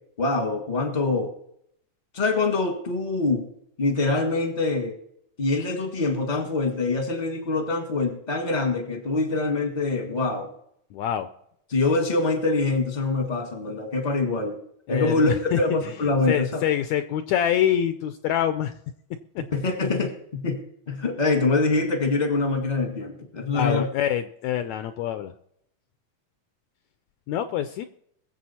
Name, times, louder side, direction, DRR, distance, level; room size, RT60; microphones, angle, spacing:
voice 1, 0.2-1.3 2.1-3.5 3.8-5.0 5.4-10.5 11.7-14.6 14.9-16.6 19.5-23.9, left 3 dB, 30° left, 4 dB, 0.8 m, -24 dB
voice 2, 10.9-11.3 14.9-15.9 16.3-18.7 19.3-19.4 23.5-25.3 27.3-27.9, left 10 dB, 80° left, 10 dB, 1.7 m, -25 dB
22.0 x 7.6 x 4.3 m, 0.73 s
omnidirectional pair, 3.8 m